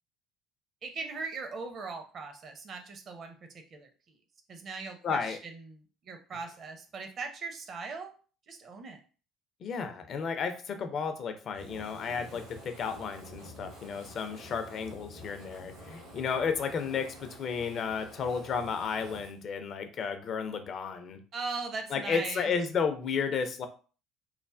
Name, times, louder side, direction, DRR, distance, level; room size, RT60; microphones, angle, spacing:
voice 1, 0.8-3.4 3.7-4.1 4.5-8.1 8.5-9.0 21.3-22.5, right 4 dB, 40° right, 5 dB, 0.6 m, -39 dB
voice 2, 5.0-5.4 9.6-21.2 21.9-23.7, left 6 dB, 45° left, 8 dB, 0.4 m, -33 dB
Fire, 11.5-19.3, equal, 80° right, 1.4 m, -48 dB
3.1 x 2.1 x 2.4 m, 0.38 s
figure-of-eight pair, 55°, 0 cm